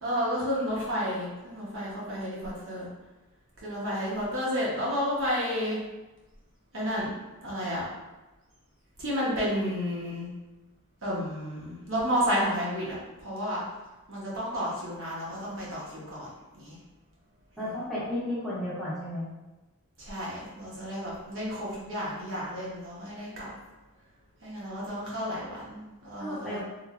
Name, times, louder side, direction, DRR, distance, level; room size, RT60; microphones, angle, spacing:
voice 1, 0.0-2.9 3.6-5.8 6.7-7.1 7.4-7.8 9.0-10.3 11.0-13.6 14.1-16.8 17.6-17.7 20.0-23.5 24.4-26.6, equal, 60° right, -7 dB, 0.9 m, -31 dB
voice 2, 17.6-19.3 26.2-26.6, left 1 dB, ahead, -11 dB, 0.7 m, -33 dB
3.1 x 2.5 x 2.4 m, 1.1 s
head